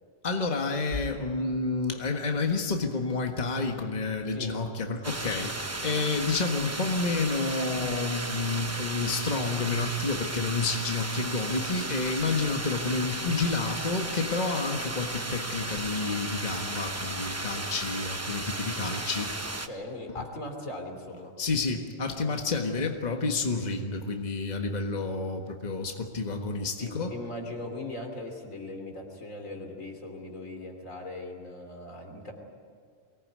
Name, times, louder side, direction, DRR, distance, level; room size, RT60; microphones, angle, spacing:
voice 1, 0.2-19.3 21.4-27.1, left 3 dB, 35° left, 3 dB, 1.6 m, -30 dB
sound 1, 5.0-19.7, right 2 dB, 15° right, 0.9 m, -35 dB
voice 2, 19.1-21.3 22.5-22.9 26.8-32.3, left 2 dB, 80° left, 3 dB, 3.6 m, -40 dB
23.5 x 18.5 x 9.5 m, 2.1 s
omnidirectional pair, 1.3 m